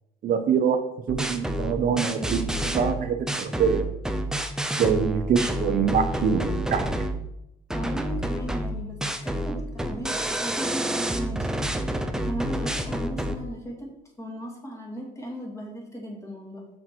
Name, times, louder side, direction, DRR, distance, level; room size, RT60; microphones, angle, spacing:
voice 1, 0.2-0.8 1.1-3.9 4.8-6.8, right 7 dB, 55° right, 7 dB, 0.8 m, -24 dB
sound 1, 1.1-7.2 7.7-13.4, right 1 dB, 5° right, 0.7 m, -29 dB
voice 2, 7.7-11.6 12.2-16.7, right 1 dB, 15° left, -1 dB, 2.4 m, -36 dB
6.5 x 5.9 x 4.6 m, 0.80 s
cardioid pair, 110°, 17 cm